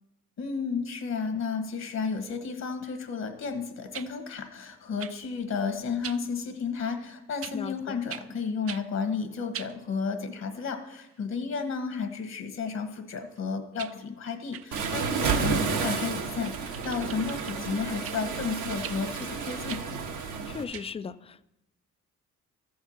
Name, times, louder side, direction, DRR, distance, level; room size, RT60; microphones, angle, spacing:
voice 1, 0.4-19.8, left 5 dB, 60° left, 1.3 m, -32 dB
sound 1, 3.9-4.1 5.0-5.2 6.0-6.2 7.4-7.6 8.1-8.3 8.7-8.8 9.5-9.8 13.4-13.5 13.8-13.9 14.5-15.6 16.4-17.6 18.0-18.2 18.8-19.0 19.7-19.9 20.7-20.9, right 10 dB, 50° right, 0.5 m, -41 dB
voice 2, 7.5-8.0 20.4-21.4, left 5 dB, 20° left, 0.3 m, -37 dB
Waves surf, 14.7-20.6, right 5 dB, 75° right, 1.4 m, -31 dB
13.5 x 4.7 x 7.1 m
cardioid pair, 90°, 30 cm